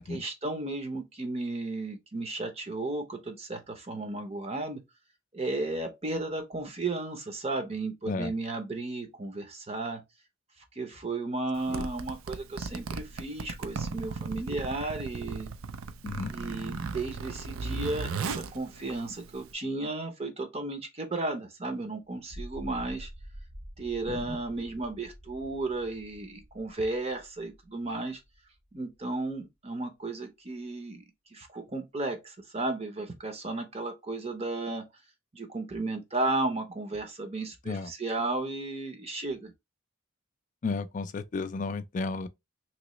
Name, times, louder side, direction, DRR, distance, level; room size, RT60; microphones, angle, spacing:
voice 1, 0.0-4.8 5.3-10.0 10.8-15.5 16.3-23.1 23.8-28.2 28.7-31.0 31.3-34.9 35.3-39.5, right 2 dB, 30° right, 0.7 m, -34 dB
Zipper (clothing), 11.5-19.5, right 4 dB, 85° right, 0.4 m, -37 dB
sound 1, 22.2-28.6, equal, 70° right, 1.2 m, -47 dB
voice 2, 24.1-24.4 37.7-37.9 40.6-42.3, left 4 dB, 35° left, 0.3 m, -33 dB
3.0 x 3.0 x 3.0 m
head